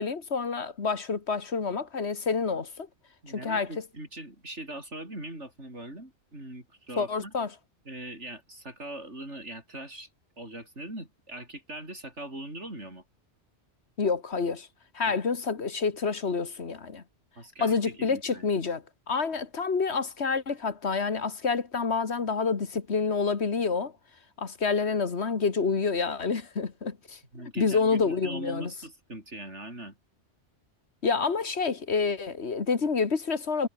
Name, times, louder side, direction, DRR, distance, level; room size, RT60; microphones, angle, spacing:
voice 1, 0.0-2.9 3.3-3.8 7.0-7.5 14.0-14.7 14.9-17.0 17.6-23.9 24.4-27.2 27.6-28.7 31.0-33.7, left 5 dB, 70° left, 2.0 m, -28 dB
voice 2, 3.2-7.3 7.8-10.1 10.4-13.0 15.1-15.2 17.4-18.5 27.3-29.9, right 1 dB, 90° right, 8.2 m, -41 dB
omnidirectional pair, 1.2 m